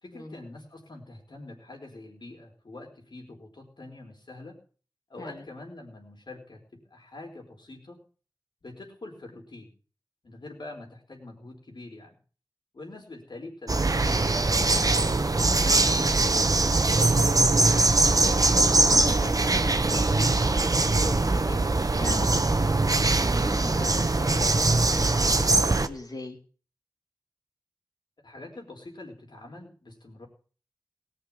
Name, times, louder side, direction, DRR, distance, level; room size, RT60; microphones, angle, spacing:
voice 1, 0.0-4.6 5.1-8.0 8.6-9.7 10.2-12.2 12.7-16.0 28.2-30.3, left 2 dB, 75° left, 1 dB, 4.7 m, -45 dB
sound 1, 13.7-25.9, right 2 dB, 50° right, 1.0 m, -22 dB
voice 2, 16.9-17.4 17.9-22.7 23.4-26.4, left 2 dB, 55° left, 2 dB, 3.4 m, -39 dB
18.5 x 6.7 x 7.4 m, 0.40 s
wide cardioid pair, 50°, 8 cm